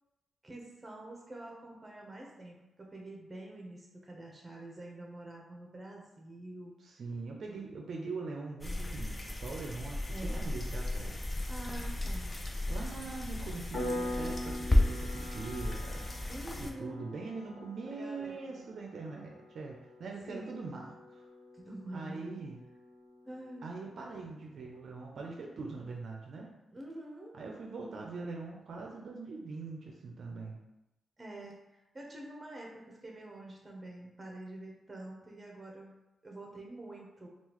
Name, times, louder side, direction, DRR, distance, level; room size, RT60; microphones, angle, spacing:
voice 1, 0.4-6.8 10.1-10.5 11.5-12.3 16.3-17.1 17.9-18.6 20.3-20.6 21.5-22.3 23.3-23.7 26.7-27.3 31.2-37.3, right 1 dB, 20° right, -1 dB, 0.8 m, -46 dB
voice 2, 6.8-11.2 12.7-16.0 16.6-21.2 21.9-22.6 23.6-26.5 27.3-30.6, right 3 dB, 65° right, 0 dB, 0.5 m, -42 dB
sound 1, 8.6-16.7, left 1 dB, 20° left, 0.4 m, -34 dB
Piano, 13.7-24.1, left 1 dB, 75° left, 1.3 m, -44 dB
3.7 x 2.4 x 3.0 m, 0.94 s
cardioid pair, 100°, 0 cm